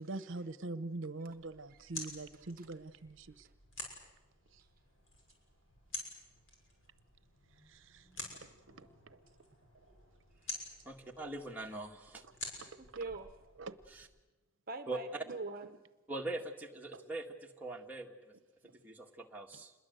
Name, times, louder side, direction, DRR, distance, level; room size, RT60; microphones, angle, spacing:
voice 1, 0.0-3.5 7.7-8.1 8.8-9.2 12.6-12.7 13.6-13.8 16.9-17.0, right 2 dB, 70° right, 13 dB, 0.8 m, -43 dB
sound 1, 1.3-14.0, left 2 dB, 70° left, 6.5 m, -50 dB
voice 2, 2.3-2.7 12.8-13.3 14.7-15.8, right 3 dB, 45° right, 8 dB, 0.9 m, -43 dB
voice 3, 10.9-12.2 13.9-14.1 14.9-15.0 16.1-18.3 18.8-19.7, right 2 dB, 10° right, -1 dB, 1.7 m, -42 dB
27.5 x 21.5 x 7.9 m, 1.1 s
head